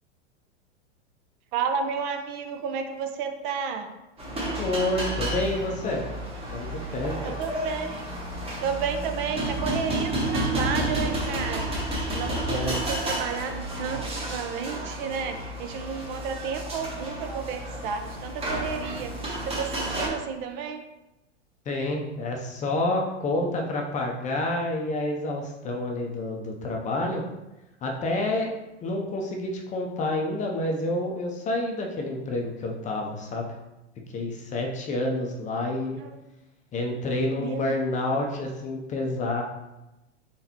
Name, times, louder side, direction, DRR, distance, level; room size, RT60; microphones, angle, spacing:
voice 1, 1.5-3.9 7.2-8.1 8.6-20.8 36.0-36.2 37.4-37.7, right 6 dB, 45° right, 6 dB, 0.6 m, -32 dB
sound 1, 4.2-20.1, right 1 dB, 15° right, 1.2 m, -31 dB
voice 2, 4.6-6.0 6.5-7.4 12.5-12.8 21.7-27.2 27.8-28.5 28.8-33.5 34.1-36.0 36.7-39.4, left 2 dB, 20° left, 1 dB, 0.6 m, -28 dB
4.0 x 3.8 x 2.8 m, 0.96 s
hypercardioid pair, 115°, 35 cm